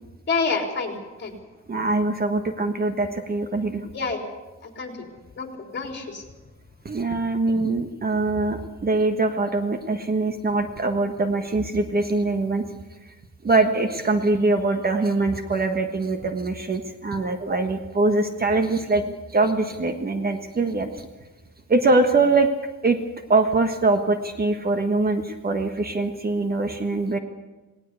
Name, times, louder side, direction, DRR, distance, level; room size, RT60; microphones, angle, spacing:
voice 1, 0.3-1.3 3.9-4.2 4.8-5.1 5.4-5.5 5.7-6.2, left 4 dB, 35° left, 3 dB, 3.9 m, -27 dB
voice 2, 1.7-3.9 6.8-12.6 13.1-13.2 13.4-21.1 21.7-22.5 22.8-23.0 23.3-27.2, right 3 dB, 30° right, 7 dB, 1.4 m, -23 dB
19.0 x 18.5 x 8.3 m, 1.2 s
cardioid pair, 125°, 31 cm